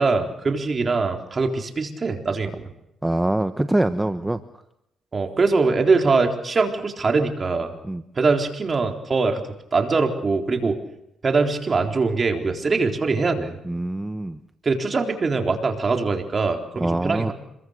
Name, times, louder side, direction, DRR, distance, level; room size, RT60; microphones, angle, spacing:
voice 1, 0.0-2.7 5.1-7.7 8.2-9.4 9.7-10.8 11.2-13.5 14.6-17.3, right 4 dB, 35° right, 4 dB, 3.9 m, -22 dB
voice 2, 3.0-4.4 7.8-8.0 13.6-14.4 16.8-17.3, right 1 dB, 10° right, 9 dB, 1.1 m, -24 dB
27.0 x 22.5 x 6.6 m, 0.82 s
cardioid pair, 90°, 0 cm